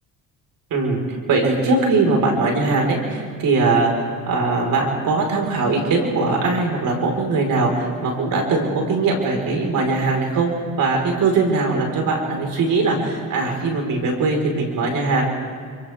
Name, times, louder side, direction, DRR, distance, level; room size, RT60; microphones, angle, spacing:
voice 1, 0.7-10.5 10.8-15.3, right 3 dB, 70° right, 1 dB, 4.9 m, -20 dB
28.0 x 26.5 x 3.7 m, 2.2 s
cardioid pair, 85°, 34 cm